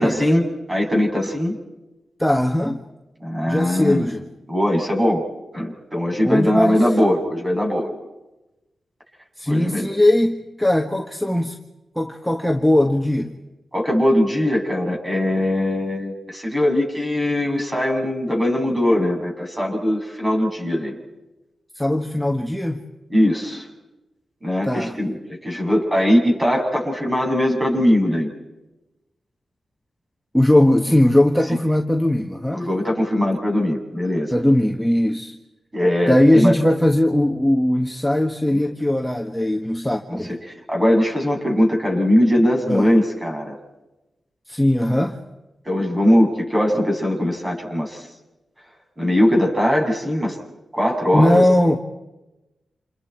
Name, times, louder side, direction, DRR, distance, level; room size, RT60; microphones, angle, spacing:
voice 1, 0.0-1.6 3.2-4.1 4.5-5.3 5.5-7.9 9.5-9.8 13.7-21.0 23.1-23.7 24.4-28.3 32.5-34.3 35.7-36.5 40.3-40.4 40.7-43.6 45.7-48.0 49.0-50.4 50.7-51.4, left 1 dB, 20° right, 1 dB, 7.1 m, -20 dB
voice 2, 2.2-2.8 3.5-4.2 6.2-6.9 9.4-11.6 11.9-13.3 21.7-22.8 24.6-25.0 30.3-32.6 34.3-35.3 36.1-40.4 42.7-42.9 44.5-45.2 51.1-51.8, left 1 dB, 5° left, 3 dB, 1.5 m, -19 dB
29.0 x 28.0 x 4.7 m, 1.0 s
cardioid pair, 65°, 0 cm